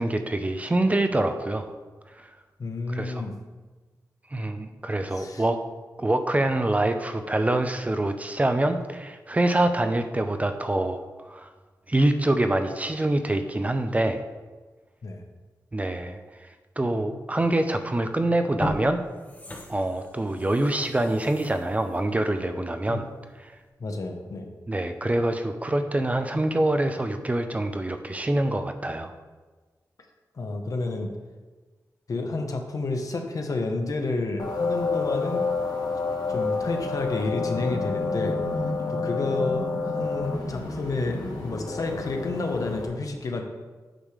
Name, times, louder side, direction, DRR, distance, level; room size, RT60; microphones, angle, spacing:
voice 1, 0.0-1.7 2.2-2.3 2.9-3.3 4.3-5.6 6.0-11.5 11.9-14.2 15.7-16.2 16.8-19.0 19.7-23.0 23.4-23.5 24.7-29.1, right 1 dB, 20° right, 7 dB, 0.6 m, -25 dB
voice 2, 2.6-3.3 5.1-5.4 15.0-15.2 17.1-17.2 22.9-23.0 23.8-24.5 30.3-31.1 32.1-35.4 36.3-38.4 38.9-43.4, left 3 dB, 60° left, 4 dB, 1.1 m, -30 dB
sound 1, 17.8-18.0 18.4-23.1 23.5-23.6, left 1 dB, 25° left, 1.0 m, -38 dB
sound 2, 34.4-42.9, left 4 dB, 80° left, 1.5 m, -29 dB
8.9 x 3.3 x 6.5 m, 1.3 s
wide cardioid pair, 85°, 7 cm